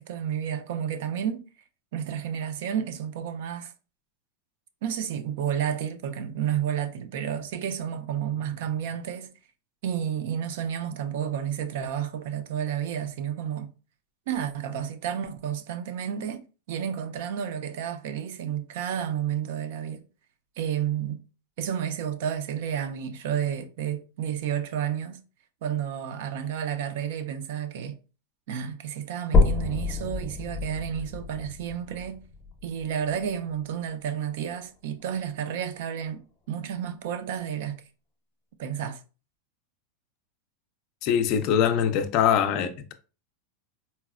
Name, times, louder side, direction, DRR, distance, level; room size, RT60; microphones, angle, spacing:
voice 1, 0.0-1.4 1.9-3.7 4.8-9.3 9.8-13.7 14.3-16.4 16.7-20.0 20.6-21.2 21.6-25.2 25.6-28.0 28.5-32.2 32.6-36.2 36.5-37.8 38.6-39.0, right 9 dB, 65° right, 0.4 m, -31 dB
sound 1, 29.3-33.3 33.9-34.0 34.6-34.7 35.0-35.1 35.9-36.0, left 4 dB, 20° left, 0.7 m, -27 dB
voice 2, 41.0-42.9, left 8 dB, 45° left, 0.4 m, -23 dB
4.0 x 2.0 x 2.4 m
supercardioid pair, 150°, 0 cm